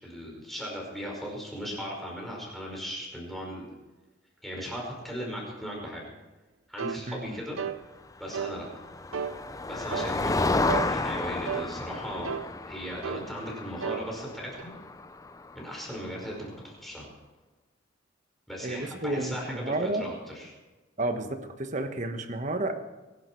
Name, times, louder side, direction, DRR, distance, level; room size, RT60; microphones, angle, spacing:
voice 1, 0.0-3.7 4.4-6.1 6.7-7.6 8.2-8.7 9.6-12.4 12.7-14.7 15.5-17.1 18.5-20.6, equal, ahead, -2 dB, 5.2 m, -37 dB
sound 1, 6.8-7.0 7.6-7.8 8.3-8.6 9.1-9.4 9.9-10.1 10.7-10.9 11.5-11.7 12.2-12.5 13.0-13.3 13.8-14.0 14.6-14.7, right 7 dB, 80° right, 0.6 m, -33 dB
voice 2, 7.1-7.4 18.6-20.1 21.0-22.8, right 2 dB, 40° right, 7 dB, 1.3 m, -31 dB
Motor vehicle (road), 8.4-16.2, left 2 dB, 15° left, 0.5 m, -32 dB
23.0 x 11.5 x 4.6 m, 1.2 s
head